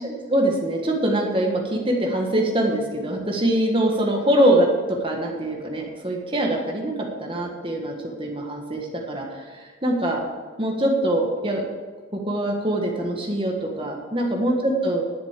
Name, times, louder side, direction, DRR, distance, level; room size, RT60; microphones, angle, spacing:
voice 1, 0.0-6.9 7.2-7.9 8.2-10.2 10.6-11.6 12.1-15.0, right 1 dB, 25° right, 1 dB, 1.6 m, -23 dB
11.0 x 6.9 x 7.4 m, 1.5 s
head